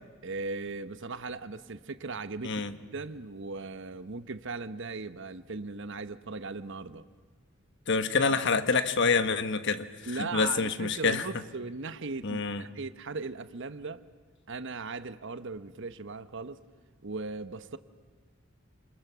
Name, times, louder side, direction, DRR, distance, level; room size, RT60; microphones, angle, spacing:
voice 1, 0.2-2.6 2.9-7.1 8.2-8.4 10.1-14.0 14.5-16.6 17.0-17.8, right 3 dB, 65° right, 1.1 m, -38 dB
voice 2, 2.4-2.8 7.9-9.9 10.2-11.2 12.2-12.6, left 4 dB, 60° left, 1.3 m, -27 dB
29.0 x 27.5 x 7.0 m
head